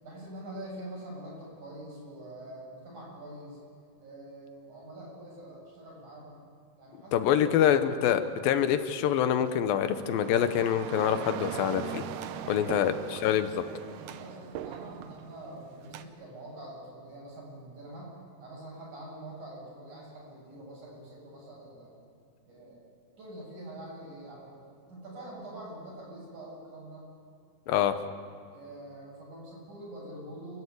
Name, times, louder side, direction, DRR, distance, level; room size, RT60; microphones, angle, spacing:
voice 1, 0.0-3.6 4.0-6.4 6.8-7.5 12.4-21.9 22.5-22.9 23.2-24.6 24.9-27.1 28.5-30.6, right 1 dB, 55° right, -4 dB, 9.5 m, -45 dB
voice 2, 7.1-12.0 12.5-13.5 27.7-27.9, left 9 dB, 85° left, 10 dB, 2.7 m, -25 dB
sound 1, 9.4-16.0, right 10 dB, 75° right, 2.3 m, -40 dB
29.0 x 14.5 x 8.5 m, 2.4 s
omnidirectional pair, 4.1 m